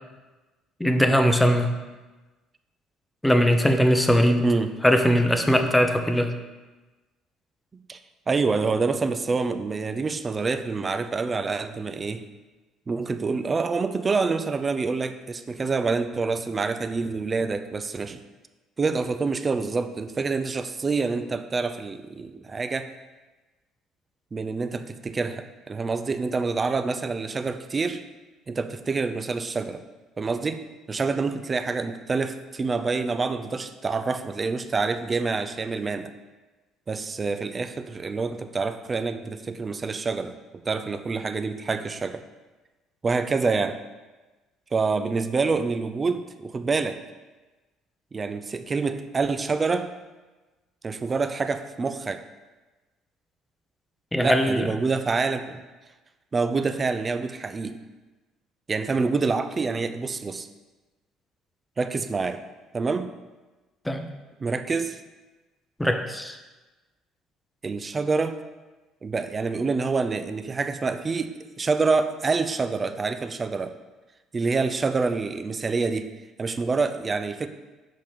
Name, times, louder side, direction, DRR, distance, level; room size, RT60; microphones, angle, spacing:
voice 1, 0.8-1.7 3.2-4.5 4.8-6.3 54.1-54.7 63.8-64.1 65.8-66.4, equal, 5° left, 6 dB, 0.8 m, -20 dB
voice 2, 4.4-4.8 7.7-8.0 8.3-12.3 12.9-18.2 18.8-22.9 24.3-28.0 28.5-29.8 30.2-30.6 30.9-36.1 36.9-42.2 43.0-43.8 44.7-47.0 48.1-49.9 50.8-52.2 54.2-55.5 56.3-57.8 58.7-60.5 61.8-62.4 62.7-63.1 64.4-65.0 67.6-68.4 69.0-73.7 74.3-76.1 76.4-77.5, right 4 dB, 30° right, 9 dB, 0.5 m, -27 dB
5.8 x 5.2 x 5.1 m, 1.2 s
figure-of-eight pair, 55°, 0 cm